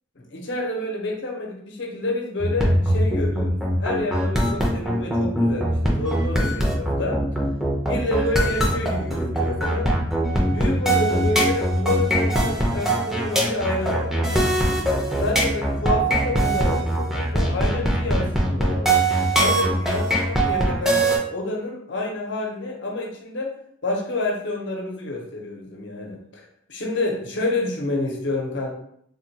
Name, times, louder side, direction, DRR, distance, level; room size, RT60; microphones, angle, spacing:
voice 1, 0.2-7.2 7.9-9.9 10.4-14.6 15.1-19.0 19.3-23.5 23.8-28.7, left 2 dB, 75° left, 0 dB, 0.7 m, -28 dB
sound 1, 2.4-21.2, right 1 dB, 5° right, 0.5 m, -21 dB
3.4 x 2.2 x 2.8 m, 0.69 s
head